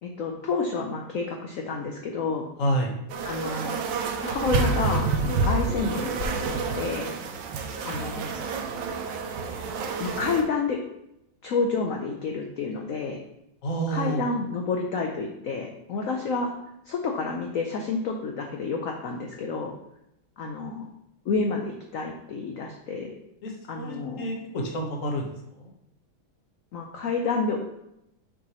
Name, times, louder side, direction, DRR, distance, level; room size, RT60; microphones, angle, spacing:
voice 1, 0.0-2.4 3.2-3.8 4.2-6.2 6.5-7.1 7.9-8.4 10.0-10.8 11.4-13.2 13.9-16.5 16.9-19.7 20.4-20.9 21.3-23.1 23.7-24.3 26.7-27.6, left 4 dB, 85° left, 2 dB, 0.7 m, -29 dB
voice 2, 2.6-2.9 13.6-14.2 23.4-25.7, right 1 dB, 45° left, 0 dB, 1.3 m, -29 dB
sound 1, 3.1-10.4, right 4 dB, 70° right, 1.3 m, -28 dB
6.7 x 4.6 x 3.0 m, 0.82 s
omnidirectional pair, 2.2 m